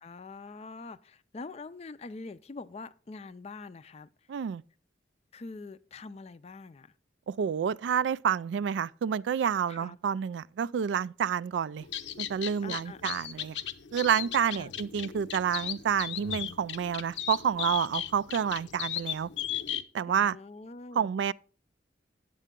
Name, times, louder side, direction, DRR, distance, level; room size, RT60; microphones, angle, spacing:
voice 1, 0.0-4.1 5.3-6.9 9.7-10.0 12.6-13.2 14.5-14.7 20.1-21.1, left 3 dB, 35° left, 0.4 m, -44 dB
voice 2, 4.3-4.6 7.3-11.9 12.2-13.6 13.9-19.3 19.9-20.4 21.0-21.3, right 8 dB, 85° right, 0.3 m, -29 dB
sound 1, 11.8-19.8, left 10 dB, 90° left, 0.7 m, -37 dB
9.1 x 7.6 x 3.6 m
head